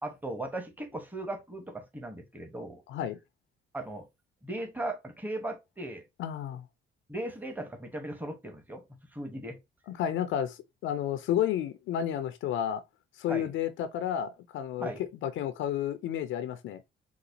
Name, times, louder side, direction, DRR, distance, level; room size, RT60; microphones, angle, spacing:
voice 1, 0.0-2.8 3.7-4.1 4.4-6.0 7.1-8.8 9.1-9.6 13.3-13.5 14.8-15.0, right 1 dB, 10° right, 1.0 m, -37 dB
voice 2, 2.9-3.2 6.2-6.6 9.9-12.8 13.2-16.8, left 10 dB, 80° left, 0.5 m, -31 dB
4.1 x 2.4 x 2.6 m
cardioid pair, 90°, 20 cm